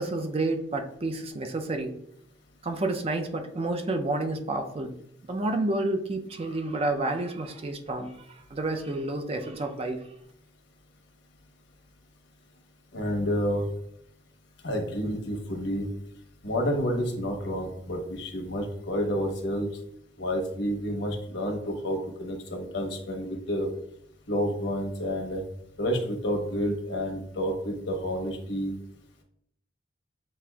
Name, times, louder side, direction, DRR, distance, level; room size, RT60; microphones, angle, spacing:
voice 1, 0.0-2.0 2.6-4.9 5.3-10.1, right 2 dB, 30° right, 5 dB, 0.4 m, -30 dB
voice 2, 12.9-13.7 14.6-15.9 16.4-19.7 20.2-23.7 24.3-25.4 25.8-28.7, equal, 70° left, 1 dB, 0.9 m, -29 dB
7.2 x 2.5 x 2.2 m, 0.72 s
head